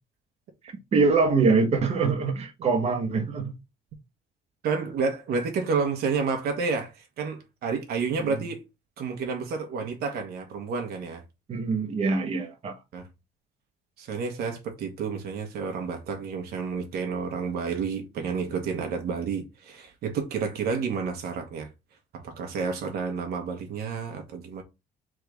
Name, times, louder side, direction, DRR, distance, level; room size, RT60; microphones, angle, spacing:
voice 1, 0.9-3.5 11.5-12.8, right 4 dB, 40° right, 1.0 m, -24 dB
voice 2, 4.6-8.6 9.0-11.2 12.9-13.1 14.0-21.7 22.1-24.6, right 5 dB, 70° right, 1.2 m, -30 dB
3.6 x 3.3 x 3.3 m
cardioid pair, 110°, 17 cm